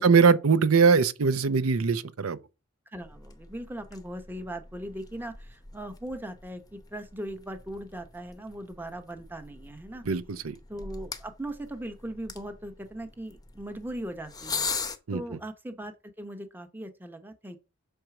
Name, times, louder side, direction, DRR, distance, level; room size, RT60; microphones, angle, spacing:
voice 1, 0.0-2.4 10.1-10.5 15.1-15.2, right 5 dB, 80° right, 0.7 m, -21 dB
voice 2, 2.9-10.0 10.7-14.7 15.1-17.6, right 1 dB, 10° right, 0.8 m, -39 dB
sound 1, 3.0-15.0, left 5 dB, 20° left, 0.7 m, -41 dB
6.6 x 4.5 x 5.9 m
head